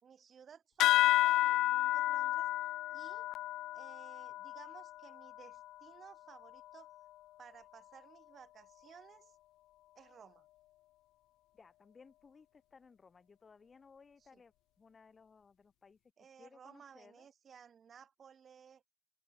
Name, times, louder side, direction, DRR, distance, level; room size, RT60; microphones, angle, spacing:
voice 1, 0.0-2.5 2.9-3.3 3.7-6.9 7.4-9.4 10.0-10.5 14.3-14.4 16.2-18.8, right 7 dB, 30° right, 4.3 m, -57 dB
sound 1, 0.8-5.7, left 15 dB, 60° left, 0.4 m, -31 dB
voice 2, 11.5-16.0 16.4-17.3, left 5 dB, 20° left, 7.0 m, -61 dB
open air
cardioid pair, 160°, 0 cm